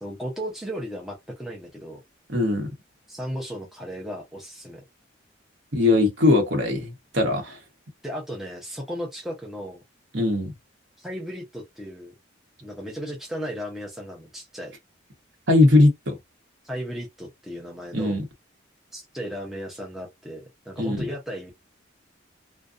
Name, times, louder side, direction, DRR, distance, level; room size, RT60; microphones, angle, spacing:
voice 1, 0.0-2.0 3.1-4.8 8.0-9.8 11.0-12.1 12.6-14.7 16.6-18.2 18.9-21.5, equal, ahead, 0.6 m, -35 dB
voice 2, 2.3-2.7 5.7-7.6 10.1-10.5 15.5-16.1 17.9-18.2 20.8-21.0, left 2 dB, 60° right, 1.0 m, -20 dB
2.5 x 2.2 x 2.4 m
head